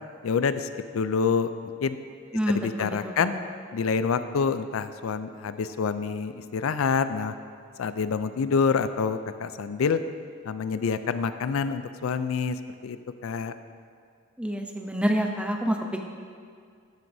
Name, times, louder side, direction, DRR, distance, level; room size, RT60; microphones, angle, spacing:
voice 1, 0.2-2.0 2.5-3.3 3.7-7.3 7.8-10.0 10.4-13.0 13.2-13.5, left 5 dB, 85° left, 11 dB, 0.4 m, -27 dB
voice 2, 2.3-2.7 3.0-3.1 14.4-15.8, equal, 5° right, 2 dB, 0.6 m, -26 dB
13.0 x 9.1 x 2.7 m, 2.2 s
head